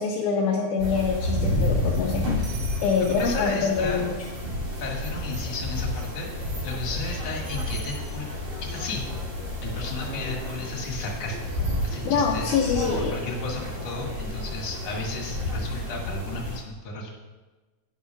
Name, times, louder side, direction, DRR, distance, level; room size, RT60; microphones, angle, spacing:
voice 1, 0.0-4.1 12.0-13.1 15.7-15.8, left 5 dB, 75° left, -1 dB, 2.1 m, -25 dB
sound 1, 0.8-16.6, left 1 dB, 80° right, 4.3 m, -30 dB
voice 2, 3.2-4.0 4.8-8.3 8.6-9.0 9.6-12.6 13.0-17.1, left 3 dB, 55° left, -2 dB, 2.7 m, -34 dB
11.0 x 9.9 x 2.3 m, 1.2 s
omnidirectional pair, 3.7 m